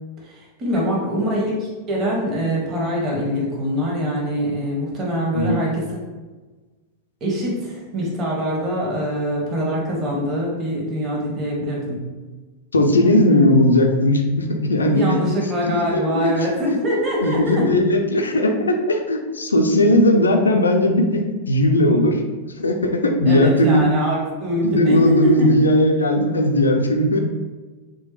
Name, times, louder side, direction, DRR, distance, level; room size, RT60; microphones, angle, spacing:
voice 1, 0.2-5.8 7.2-12.0 14.9-17.7 23.3-25.7, equal, 30° right, -3 dB, 0.7 m, -23 dB
voice 2, 12.7-15.1 15.7-16.4 17.2-23.8 24.6-27.2, left 1 dB, 75° left, 4 dB, 0.3 m, -18 dB
3.1 x 2.2 x 3.1 m, 1.3 s
figure-of-eight pair, 90°, 0 cm